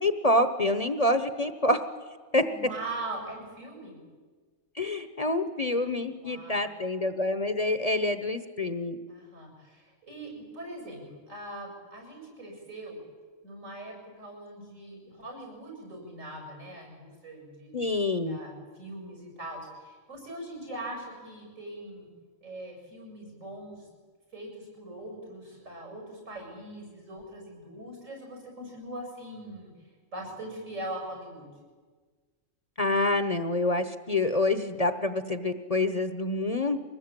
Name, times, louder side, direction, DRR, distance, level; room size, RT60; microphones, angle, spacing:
voice 1, 0.0-1.8 2.3-2.5 4.8-9.0 17.7-18.4 32.8-36.8, left 2 dB, 30° left, 9 dB, 1.0 m, -27 dB
voice 2, 2.5-4.0 6.2-6.7 9.1-13.0 13.4-17.9 18.3-22.1 22.4-23.9 24.3-29.7 30.1-31.5, right 1 dB, 80° right, 1 dB, 8.4 m, -41 dB
23.5 x 19.5 x 9.1 m, 1.5 s
omnidirectional pair, 1.3 m